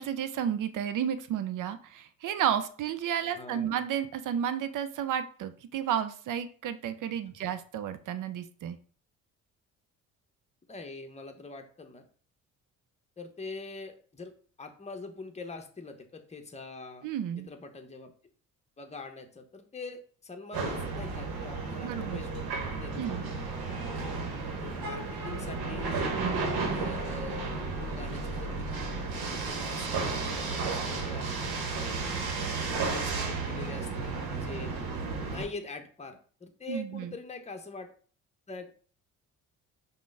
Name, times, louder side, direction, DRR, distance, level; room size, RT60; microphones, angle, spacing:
voice 1, 0.0-8.8 17.0-17.5 21.8-22.2 23.0-23.2 36.7-37.1, right 9 dB, 50° right, 12 dB, 0.6 m, -32 dB
voice 2, 3.3-3.8 10.7-12.1 13.2-17.1 17.4-18.1 18.8-23.0 23.5-23.8 24.5-26.2 26.5-34.7 35.2-37.9 38.5-38.7, left 3 dB, 15° left, 5 dB, 0.8 m, -44 dB
sound 1, 20.5-35.4, right 4 dB, 65° right, 1.1 m, -33 dB
5.1 x 2.3 x 3.3 m, 0.43 s
hypercardioid pair, 50°, 41 cm